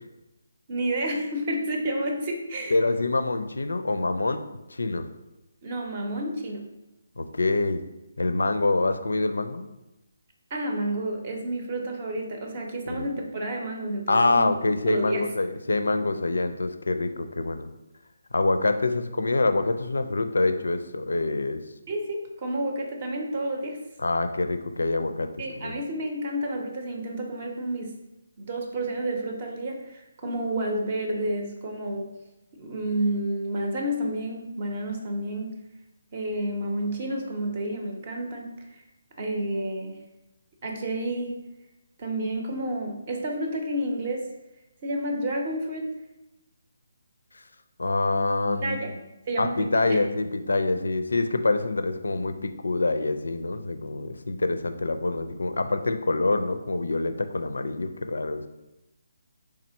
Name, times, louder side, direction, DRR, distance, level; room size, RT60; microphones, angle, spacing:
voice 1, 0.7-2.8 5.6-6.7 10.5-14.5 14.9-15.3 21.9-23.8 25.4-28.0 28.4-32.1 32.5-35.6 36.1-38.8 39.2-40.0 40.6-41.4 42.0-44.3 44.8-45.9 48.6-48.9 49.3-50.0, right 1 dB, 35° right, 2 dB, 0.7 m, -30 dB
voice 2, 2.7-4.4 4.7-5.1 7.2-7.8 8.2-9.6 12.9-13.1 14.1-17.7 18.3-21.6 24.0-25.3 25.6-25.8 47.8-49.0 49.4-58.5, left 2 dB, 70° left, 9 dB, 0.4 m, -26 dB
3.6 x 3.2 x 4.5 m, 0.96 s
figure-of-eight pair, 145°, 0 cm